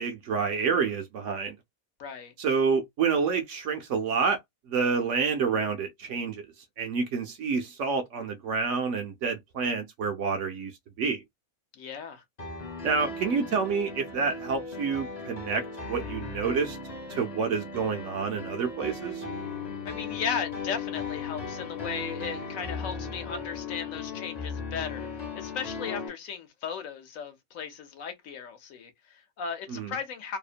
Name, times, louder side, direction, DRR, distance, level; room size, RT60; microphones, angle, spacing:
voice 1, 0.0-1.5 2.4-4.4 4.7-6.4 6.8-10.7 11.0-11.2 12.8-15.6 15.9-16.8 17.1-19.2 29.7-29.9, right 5 dB, 65° right, 0.8 m, -28 dB
voice 2, 2.0-2.3 11.7-12.2 19.8-30.4, left 6 dB, 70° left, 1.1 m, -36 dB
Piano, 12.4-26.1, left 4 dB, 35° left, 0.7 m, -37 dB
2.8 x 2.1 x 2.4 m
omnidirectional pair, 1.5 m